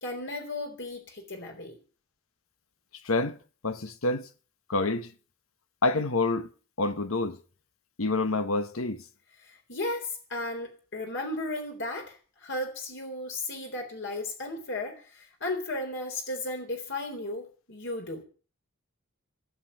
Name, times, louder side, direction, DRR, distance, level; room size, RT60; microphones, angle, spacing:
voice 1, 0.0-1.8 9.4-18.2, left 2 dB, 60° left, 3.9 m, -35 dB
voice 2, 3.0-3.4 3.6-4.3 4.7-5.1 5.8-6.5 6.8-7.4 8.0-9.0, left 3 dB, 85° left, 1.2 m, -27 dB
18.5 x 7.5 x 9.0 m
head